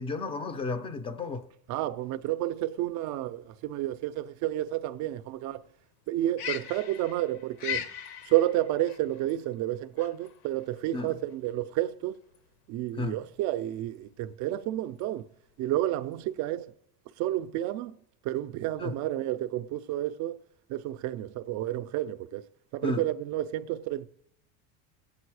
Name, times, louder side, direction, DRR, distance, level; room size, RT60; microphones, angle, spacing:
voice 1, 0.0-1.5 10.9-11.2 12.9-13.2 18.8-19.0 22.8-23.1, left 3 dB, 15° left, 0.5 m, -33 dB
voice 2, 1.7-5.6 6.1-7.8 8.3-12.2 12.7-15.2 15.6-16.7 17.2-18.0 18.2-20.4 20.7-22.4 22.7-24.1, right 14 dB, 45° right, 0.5 m, -30 dB
sound 1, 2.0-16.5, left 8 dB, 65° left, 0.9 m, -42 dB
20.5 x 8.6 x 4.8 m
cardioid pair, 160°, 41 cm